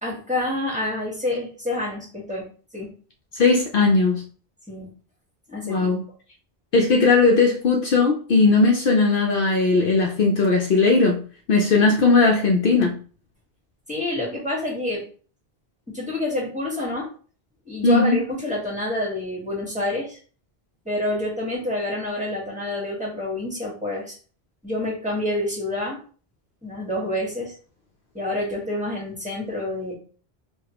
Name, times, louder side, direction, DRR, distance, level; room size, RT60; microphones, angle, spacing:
voice 1, 0.0-2.5 2.7-2.9 4.7-4.9 5.5-5.9 13.9-15.0 15.9-17.1 17.7-20.2 20.8-24.1 24.6-26.0 26.6-27.5 28.1-29.9, left 1 dB, 5° right, -3 dB, 1.4 m, -27 dB
voice 2, 3.3-4.2 5.6-6.0 6.7-11.2 11.5-13.0 17.8-18.2, left 3 dB, 65° left, 1 dB, 0.8 m, -18 dB
4.8 x 2.4 x 2.9 m, 0.40 s
omnidirectional pair, 1.1 m